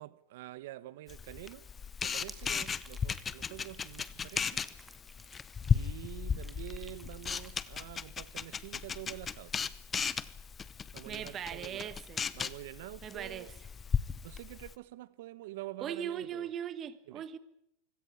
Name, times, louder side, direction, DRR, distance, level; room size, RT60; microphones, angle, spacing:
voice 1, 0.0-1.7 2.0-4.7 5.7-9.8 10.9-12.0 12.3-13.5 14.2-16.5 17.1-17.2, right 16 dB, 70° right, 1.1 m, -47 dB
Camera, 1.1-14.7, left 6 dB, 20° left, 0.8 m, -36 dB
sound 1, 2.0-6.1 6.4-7.5, right 1 dB, ahead, 2.0 m, -55 dB
voice 2, 11.0-12.2 13.0-13.5 15.8-17.4, right 9 dB, 30° right, 1.4 m, -39 dB
24.0 x 17.0 x 8.6 m
supercardioid pair, 145°, 0 cm